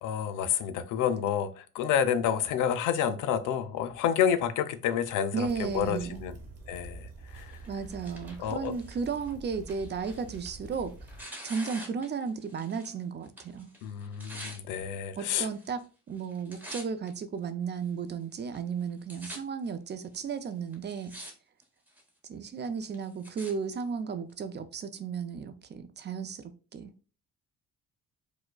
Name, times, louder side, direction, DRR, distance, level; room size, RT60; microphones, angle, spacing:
voice 1, 0.0-6.4 6.7-7.6 8.4-8.7 13.8-15.5, left 9 dB, 85° left, 0.5 m, -29 dB
voice 2, 5.3-6.2 7.7-10.9 11.4-13.7 15.2-21.1 22.3-26.9, right 5 dB, 35° right, 0.4 m, -34 dB
sound 1, 5.4-11.2, right 3 dB, 55° right, 1.0 m, -47 dB
Tearing, 7.5-13.0 13.2-14.6 15.3-15.8 16.1-17.1 17.7-17.8 18.5-18.6 18.8-19.4 20.1-20.2 20.7-21.3 21.6-22.1 22.6-23.5 24.3-24.4, equal, 5° right, 0.9 m, -46 dB
4.7 x 2.1 x 2.2 m
cardioid pair, 90°, 30 cm